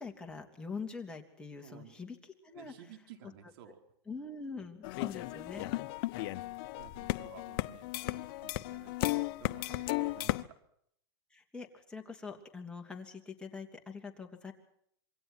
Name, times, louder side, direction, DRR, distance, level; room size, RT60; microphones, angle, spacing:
voice 1, 0.0-2.2 2.4-2.7 4.1-5.7 11.3-14.5, left 4 dB, 5° left, 1 dB, 3.1 m, -44 dB
voice 2, 1.6-1.9 2.5-3.8 6.2-6.5 6.8-10.6, right 10 dB, 60° right, 6 dB, 4.5 m, -54 dB
sound 1, 4.8-10.4, left 18 dB, 50° left, 1.0 m, -35 dB
27.5 x 23.5 x 4.6 m, 0.70 s
supercardioid pair, 135°, 14 cm